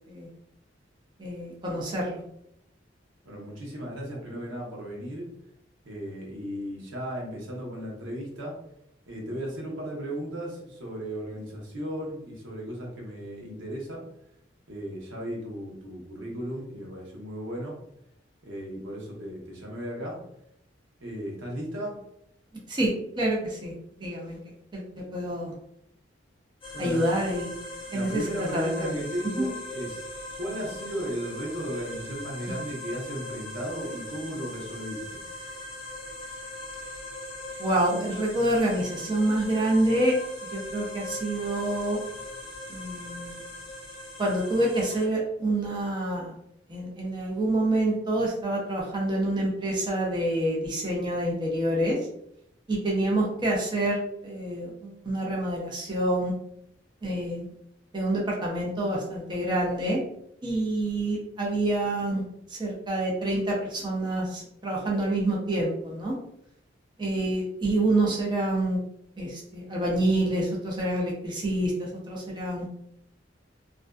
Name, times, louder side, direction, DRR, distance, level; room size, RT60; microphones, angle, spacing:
voice 1, 1.2-2.2 22.7-23.7 24.0-24.4 24.7-25.5 26.8-27.5 27.9-28.2 28.5-29.0 29.4-29.5 37.6-40.2 40.5-42.0 42.7-43.4 44.2-46.3 46.7-52.0 52.7-56.3 57.0-57.4 57.9-60.0 60.4-62.2 62.5-66.1 67.0-68.8 69.2-72.7, right 1 dB, 25° right, -3 dB, 0.5 m, -27 dB
voice 2, 3.2-5.3 5.8-8.6 9.1-14.1 14.7-17.8 18.4-20.2 21.0-22.0 26.7-27.1 27.8-30.1 30.4-35.2, equal, 90° right, -1 dB, 0.8 m, -35 dB
sound 1, 26.6-45.1, left 1 dB, 30° left, 0.7 m, -40 dB
2.4 x 2.2 x 2.2 m, 0.76 s
head